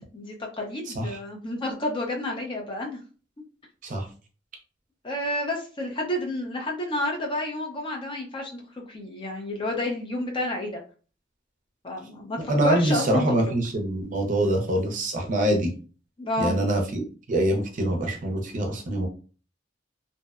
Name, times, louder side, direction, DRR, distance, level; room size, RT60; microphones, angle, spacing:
voice 1, 0.1-3.0 5.0-10.8 11.8-13.3 16.2-16.6, left 1 dB, 25° left, 1 dB, 0.5 m, -30 dB
voice 2, 12.5-15.7 16.4-19.1, right 1 dB, 45° right, 3 dB, 0.5 m, -24 dB
2.6 x 2.0 x 2.3 m, 0.38 s
head